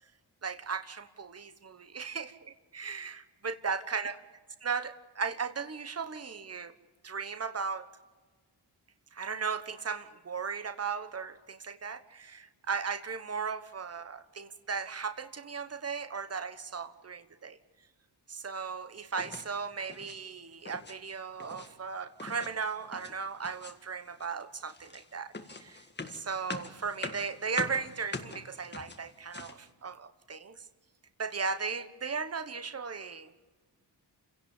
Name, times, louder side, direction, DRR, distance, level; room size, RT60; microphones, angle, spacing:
voice 1, 0.4-4.2 4.6-6.7 7.0-7.9 9.1-17.6 18.3-30.6 31.2-33.3, right 5 dB, 35° right, 12 dB, 1.2 m, -36 dB
sound 1, 19.1-19.5 19.8-20.2 20.5-21.0 21.2-21.7 22.2-23.2 23.4-23.9 24.2-29.7, left 3 dB, 25° left, 1.8 m, -43 dB
29.0 x 17.0 x 7.2 m, 1.4 s
wide cardioid pair, 125°, 41 cm